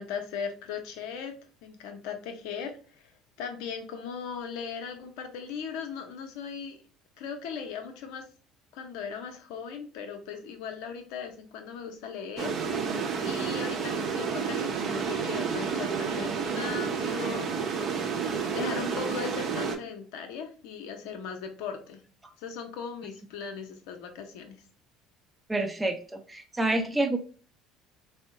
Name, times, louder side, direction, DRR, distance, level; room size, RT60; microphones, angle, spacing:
voice 1, 0.0-1.3 1.6-6.8 7.2-8.3 8.7-22.0 22.4-24.6, left 6 dB, 70° left, 5 dB, 0.6 m, -38 dB
sound 1, 12.4-19.8, right 6 dB, 50° right, 0.6 m, -30 dB
voice 2, 25.5-27.2, right 2 dB, 15° right, 4 dB, 0.5 m, -28 dB
3.5 x 2.0 x 2.6 m, 0.39 s
hypercardioid pair, 65°, 0 cm